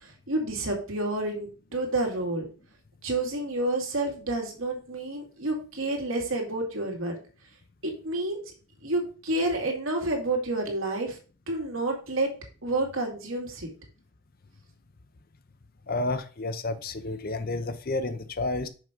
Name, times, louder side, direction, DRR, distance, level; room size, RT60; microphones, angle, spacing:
voice 1, 0.0-2.5 3.0-7.1 7.8-8.4 8.8-11.2 11.5-12.3 12.6-13.7, right 2 dB, 60° right, 2.4 m, -29 dB
voice 2, 15.9-18.7, left 2 dB, 40° left, 0.7 m, -30 dB
6.4 x 5.3 x 5.1 m
head